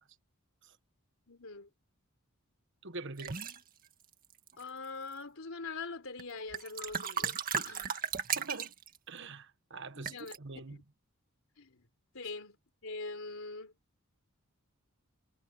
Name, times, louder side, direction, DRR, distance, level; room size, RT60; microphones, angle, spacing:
voice 1, 1.3-1.7 4.6-8.0 9.9-10.4 10.6-10.8 11.6-11.8 12.1-13.8, left 3 dB, 70° left, 3.9 m, -43 dB
voice 2, 2.8-3.4 8.3-8.7 9.1-10.8, right 3 dB, 60° right, 1.4 m, -44 dB
sound 1, 3.2-3.6 4.3-4.8 6.2-6.3 6.5-9.0 10.0-10.4, right 7 dB, 45° right, 1.9 m, -35 dB
head